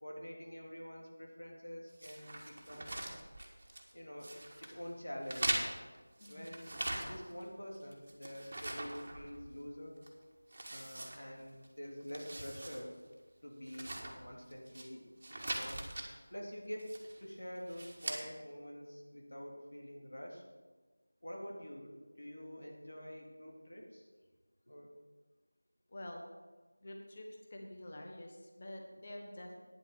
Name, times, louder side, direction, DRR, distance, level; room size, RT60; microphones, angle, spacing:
voice 1, 0.0-2.9 3.9-4.3 4.6-5.7 6.3-10.0 10.7-12.9 13.4-15.0 15.5-15.9 16.3-16.9 17.2-20.4 21.2-24.1 24.7-24.9, equal, 75° left, 0 dB, 2.9 m, -47 dB
sound 1, 2.0-3.9 4.2-4.7 5.2-7.4 7.7-9.7 10.0-10.1 10.5-11.7 12.0-12.8 13.1-13.2 13.7-14.8 15.2-16.1 16.8-17.2 17.7-18.2, right 1 dB, 40° right, 1.8 m, -41 dB
voice 2, 6.2-6.5 25.9-26.2 26.8-29.6, left 1 dB, 30° left, 1 dB, 1.4 m, -48 dB
9.8 x 7.8 x 7.1 m, 1.3 s
figure-of-eight pair, 175°, 0 cm